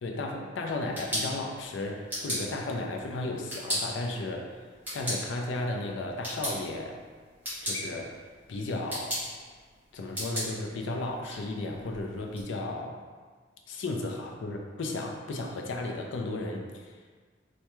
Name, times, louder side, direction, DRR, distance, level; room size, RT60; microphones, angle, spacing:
voice 1, 0.0-4.5 4.9-7.0 7.6-8.2 8.5-9.2 9.9-13.0 13.7-16.9, left 2 dB, 70° left, 1 dB, 0.4 m, -34 dB
sound 1, 0.7-12.4, equal, 10° right, 1.3 m, -38 dB
3.3 x 2.2 x 3.0 m, 1.5 s
head